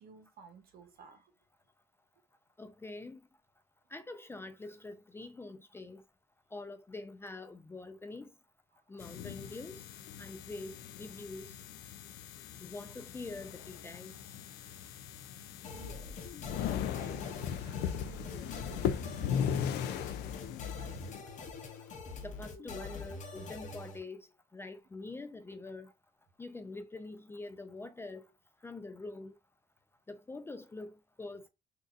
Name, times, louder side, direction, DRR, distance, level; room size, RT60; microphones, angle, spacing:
voice 1, 0.0-1.3 8.7-8.8 15.7-16.3 16.9-20.2 20.8-21.1, right 5 dB, 60° right, 1.1 m, -56 dB
voice 2, 2.6-3.2 3.9-6.0 6.5-8.3 8.9-9.8 10.2-11.5 12.6-14.2 22.2-24.3 24.5-25.9 26.4-28.3 28.6-29.4 30.1-31.5, left 2 dB, 15° left, 0.3 m, -45 dB
sound 1, 9.0-21.2, left 9 dB, 75° left, 0.5 m, -38 dB
sound 2, 15.6-24.0, left 3 dB, 45° left, 0.8 m, -44 dB
3.9 x 2.6 x 2.4 m
cardioid pair, 110°, 17 cm